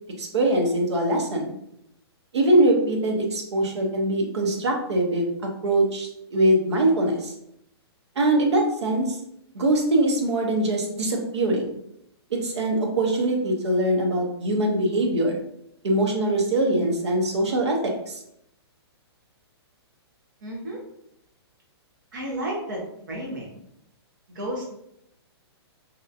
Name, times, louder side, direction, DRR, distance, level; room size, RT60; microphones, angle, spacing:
voice 1, 0.2-1.5 2.3-5.2 5.6-7.3 8.2-9.2 9.5-11.7 12.3-15.4 15.8-18.2, right 1 dB, 85° right, 1 dB, 0.9 m, -22 dB
voice 2, 20.4-20.8 22.1-23.6 24.3-24.6, right 1 dB, 45° right, -3 dB, 1.1 m, -32 dB
2.9 x 2.4 x 2.6 m, 0.76 s
hypercardioid pair, 180°, 14 cm